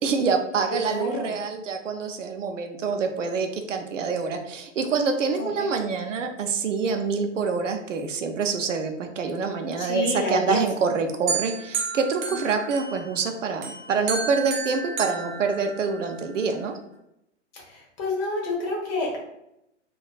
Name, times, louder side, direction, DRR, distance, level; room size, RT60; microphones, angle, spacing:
voice 1, 0.0-16.8, right 5 dB, 80° right, 5 dB, 0.6 m, -26 dB
voice 2, 0.7-1.3 5.4-5.7 9.8-10.6 12.3-12.4 17.5-19.2, left 2 dB, 35° left, -2 dB, 1.1 m, -29 dB
sound 1, 11.3-13.2 13.6-16.2, right 5 dB, 20° right, 0.4 m, -32 dB
3.3 x 2.4 x 2.3 m, 0.83 s
figure-of-eight pair, 110°, 37 cm